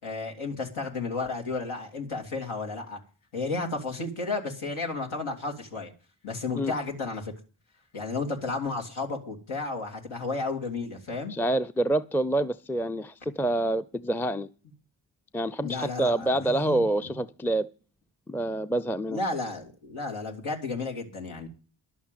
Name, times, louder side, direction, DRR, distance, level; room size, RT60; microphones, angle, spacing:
voice 1, 0.0-3.0 3.3-5.9 6.2-7.3 7.9-11.3 15.6-16.8 19.1-21.5, left 3 dB, 80° left, 2.7 m, -32 dB
voice 2, 11.3-14.5 15.3-17.7 18.3-19.2, right 1 dB, 5° left, 0.5 m, -27 dB
11.0 x 7.1 x 9.1 m
supercardioid pair, 45°, 49 cm